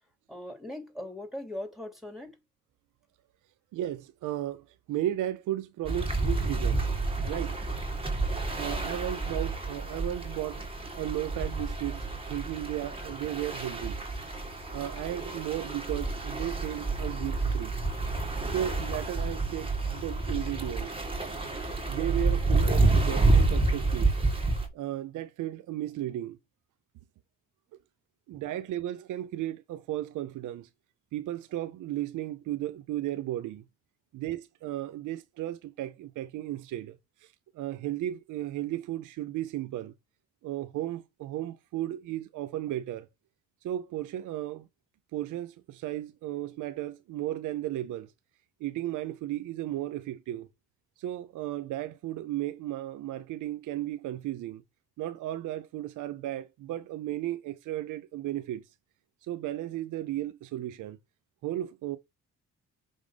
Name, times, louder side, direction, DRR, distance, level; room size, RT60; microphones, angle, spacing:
voice 1, 0.3-2.4, left 1 dB, ahead, 3.3 m, -39 dB
voice 2, 3.7-6.9 7.2-7.6 8.5-10.7 11.0-14.0 14.7-17.8 18.4-21.0 21.9-24.1 24.7-26.4 28.3-30.7 31.1-33.6 34.1-37.0 37.5-39.9 40.4-43.1 43.6-44.7 45.1-48.1 48.6-50.5 51.0-54.6 55.0-58.6 59.3-61.0 61.4-62.0, right 13 dB, 85° right, 0.7 m, -34 dB
sound 1, 5.8-24.7, right 3 dB, 20° right, 2.4 m, -29 dB
6.3 x 3.7 x 5.1 m
cardioid pair, 90°, 30 cm